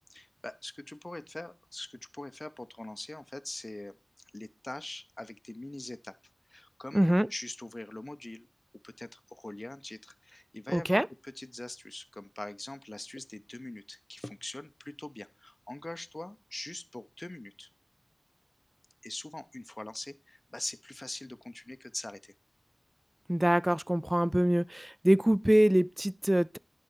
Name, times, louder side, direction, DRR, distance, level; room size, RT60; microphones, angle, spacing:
voice 1, 0.1-4.0 4.3-6.1 6.5-7.0 7.3-8.5 8.8-17.7 19.0-22.3, left 1 dB, 40° left, 0.6 m, -42 dB
voice 2, 6.9-7.3 10.7-11.1 23.3-26.6, right 1 dB, 15° right, 0.3 m, -25 dB
11.0 x 3.8 x 4.4 m
wide cardioid pair, 50°, 0 cm